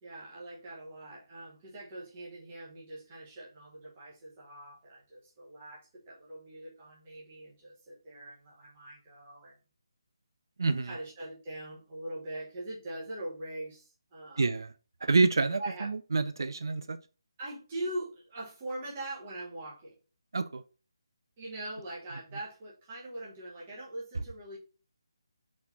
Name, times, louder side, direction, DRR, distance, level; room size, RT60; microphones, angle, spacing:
voice 1, 0.0-9.6 10.8-14.5 15.6-15.9 17.4-20.0 21.4-24.6, right 1 dB, 15° right, -5 dB, 1.1 m, -42 dB
voice 2, 10.6-10.9 14.4-14.7 15.0-17.0 20.3-20.6, right 3 dB, 55° right, 11 dB, 0.4 m, -27 dB
4.3 x 4.2 x 5.7 m, 0.34 s
hypercardioid pair, 180°, 2 cm